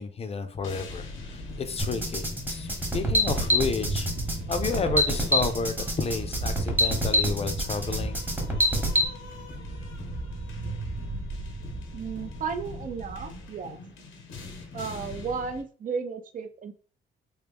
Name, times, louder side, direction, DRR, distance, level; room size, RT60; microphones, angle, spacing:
voice 1, 0.0-4.1 4.5-8.2, left 4 dB, 30° left, 9 dB, 0.5 m, -31 dB
sound 1, 0.6-15.6, left 4 dB, 90° left, 0.7 m, -44 dB
Thunder, 1.1-13.6, right 2 dB, 75° right, 1.1 m, -37 dB
sound 2, 1.8-9.1, equal, 10° right, 1.0 m, -26 dB
voice 2, 11.9-13.8 14.7-16.7, right 5 dB, 45° right, 8 dB, 0.5 m, -34 dB
3.2 x 2.2 x 3.4 m, 0.41 s
cardioid pair, 90°, 20 cm